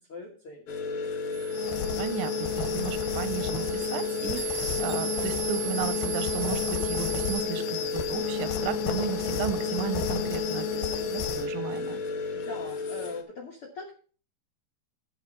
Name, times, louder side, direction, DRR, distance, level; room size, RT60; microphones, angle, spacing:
voice 1, 0.1-0.7 12.3-13.9, left 4 dB, 55° left, 1.6 m, -41 dB
sound 1, 0.7-13.2, left 4 dB, 90° left, 1.1 m, -33 dB
sound 2, 1.3-7.4, right 13 dB, 15° right, 2.4 m, -38 dB
sound 3, 1.5-11.5, left 8 dB, 75° left, 2.7 m, -33 dB
voice 2, 2.0-12.0, right 11 dB, 75° right, 2.3 m, -35 dB
13.0 x 5.3 x 5.1 m
omnidirectional pair, 4.5 m